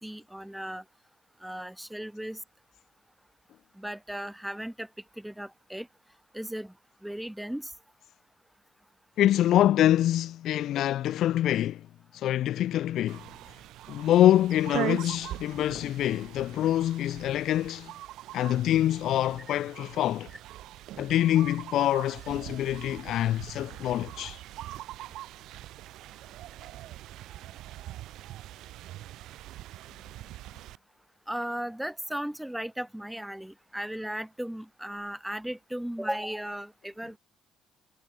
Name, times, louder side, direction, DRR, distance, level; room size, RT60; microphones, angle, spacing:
voice 1, 0.0-0.8 1.4-2.4 3.8-4.9 5.2-5.9 6.3-6.7 7.0-7.7 31.3-37.2, right 1 dB, 5° right, 5.0 m, -36 dB
voice 2, 9.2-11.9 12.1-13.2 13.9-17.9 18.3-20.3 21.0-24.4, left 12 dB, 65° left, 1.2 m, -25 dB
sound 1, 13.1-30.8, right 15 dB, 70° right, 4.4 m, -42 dB
hypercardioid pair, 60°, 0 cm